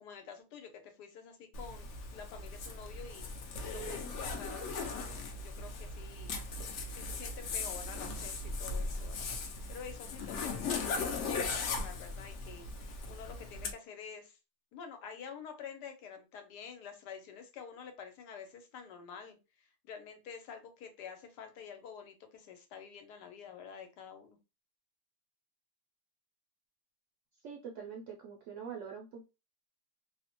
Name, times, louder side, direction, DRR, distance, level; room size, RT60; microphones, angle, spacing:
voice 1, 0.0-6.4 6.9-9.3 9.7-12.7 13.1-14.4 14.7-24.4, left 7 dB, 85° left, 6 dB, 1.2 m, -49 dB
Zipper (clothing), 1.5-13.7, left 3 dB, 70° left, 0.7 m, -38 dB
voice 2, 27.4-29.2, right 6 dB, 70° right, -1 dB, 0.7 m, -44 dB
2.8 x 2.1 x 2.8 m, 0.28 s
omnidirectional pair, 1.7 m